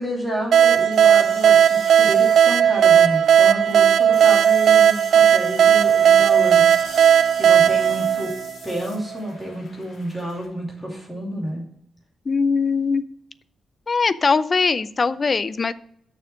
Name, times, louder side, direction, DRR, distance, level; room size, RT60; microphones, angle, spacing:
voice 1, 0.0-6.6 7.4-8.3 8.6-11.7, equal, 10° left, -3 dB, 2.9 m, -29 dB
sound 1, 0.5-10.4, left 3 dB, 60° left, 3.3 m, -43 dB
sound 2, 0.5-9.0, right 9 dB, 65° right, 0.4 m, -15 dB
Bowed string instrument, 5.4-10.3, right 1 dB, 50° right, 1.3 m, -44 dB
voice 2, 12.3-13.0 13.9-15.7, left 4 dB, 30° left, 16 dB, 0.4 m, -21 dB
6.7 x 6.3 x 6.3 m, 0.69 s
wide cardioid pair, 165°, 0 cm